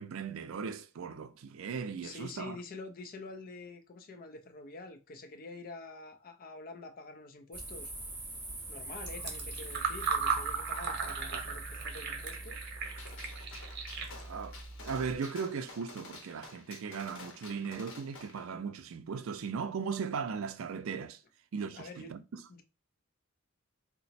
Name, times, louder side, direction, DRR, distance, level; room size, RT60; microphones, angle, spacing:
voice 1, 0.0-2.6 13.5-13.9 14.2-14.6 14.8-21.2 21.5-22.4, right 5 dB, 70° right, 0.4 m, -38 dB
voice 2, 2.0-7.9 8.7-12.6 21.8-22.1 22.5-22.6, left 3 dB, 45° left, 0.4 m, -47 dB
sound 1, 7.5-13.4, right 2 dB, 10° right, 0.8 m, -45 dB
Fill (with liquid), 9.0-15.2, right 5 dB, 50° right, 0.8 m, -37 dB
Gunshot gunfire, 13.0-18.4, left 3 dB, 60° left, 0.8 m, -50 dB
2.9 x 2.0 x 4.1 m
head